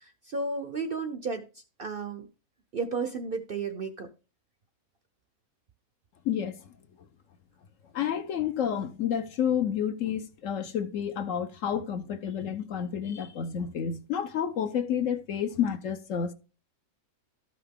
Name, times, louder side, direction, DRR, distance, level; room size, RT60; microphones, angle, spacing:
voice 1, 0.0-1.4 1.8-2.2 2.7-4.1, right 4 dB, 50° right, 0.7 m, -33 dB
voice 2, 6.2-6.6 7.9-16.3, left 8 dB, 60° left, 1.0 m, -30 dB
13.0 x 5.8 x 3.6 m
omnidirectional pair, 1.6 m